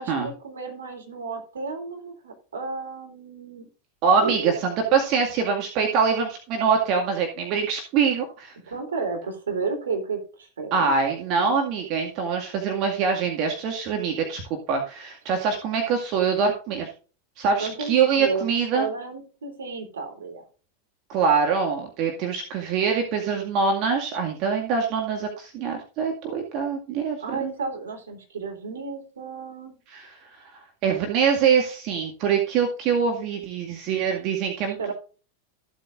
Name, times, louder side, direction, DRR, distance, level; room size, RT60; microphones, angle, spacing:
voice 1, 0.0-3.6 4.2-4.5 8.7-10.9 11.3-11.6 17.6-18.5 18.7-20.4 27.2-29.8 34.8-34.9, right 4 dB, 65° right, 3 dB, 3.5 m, -32 dB
voice 2, 4.0-8.5 10.7-14.4 14.7-16.9 17.4-18.9 21.1-27.5 29.9-30.1 30.8-34.9, right 6 dB, 40° right, 2 dB, 2.1 m, -24 dB
14.5 x 8.2 x 2.6 m, 0.36 s
figure-of-eight pair, 90°, 0 cm